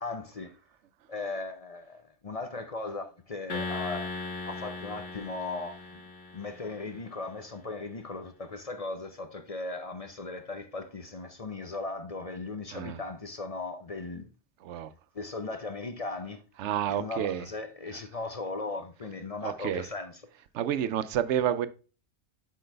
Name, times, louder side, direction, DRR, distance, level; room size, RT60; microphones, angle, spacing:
voice 1, 0.0-0.5 1.1-4.1 4.4-6.0 6.3-14.3 15.1-16.4 16.9-20.2, left 3 dB, 40° left, 0.6 m, -37 dB
sound 1, 3.5-7.0, left 3 dB, 85° left, 1.7 m, -38 dB
voice 2, 16.6-17.4 19.4-19.8 20.5-21.7, right 10 dB, 90° right, 0.9 m, -29 dB
7.8 x 4.7 x 3.3 m
omnidirectional pair, 1.2 m